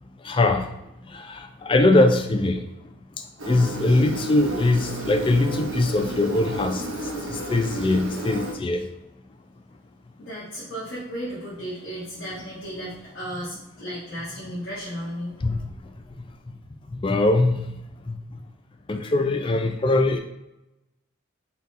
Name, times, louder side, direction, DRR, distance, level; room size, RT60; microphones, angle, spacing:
voice 1, 0.2-0.6 1.1-2.6 3.5-6.8 7.3-8.8 15.4-15.6 17.0-17.7 18.1-18.2 18.9-20.2, left 2 dB, 25° left, 5 dB, 0.3 m, -21 dB
Engine, 3.4-8.5, right 1 dB, 70° right, 0.8 m, -32 dB
voice 2, 10.2-15.6, equal, 60° left, -9 dB, 1.2 m, -34 dB
3.9 x 2.4 x 4.1 m, 0.88 s
head